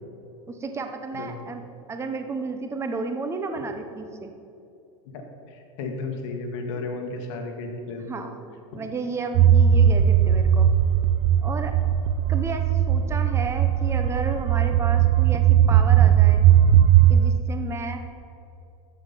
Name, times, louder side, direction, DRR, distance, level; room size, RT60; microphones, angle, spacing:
voice 1, 0.5-1.6 1.9-4.3 8.1-10.7 11.4-11.7 12.3-16.4 17.1-18.0, right 3 dB, 15° right, 6 dB, 0.9 m, -32 dB
voice 2, 5.1-8.1 8.7-8.9, left 3 dB, 65° left, 3 dB, 1.8 m, -34 dB
sound 1, 9.3-17.3, right 10 dB, 50° right, 0.5 m, -18 dB
14.0 x 5.5 x 5.9 m, 2.7 s
supercardioid pair, 130°, 17 cm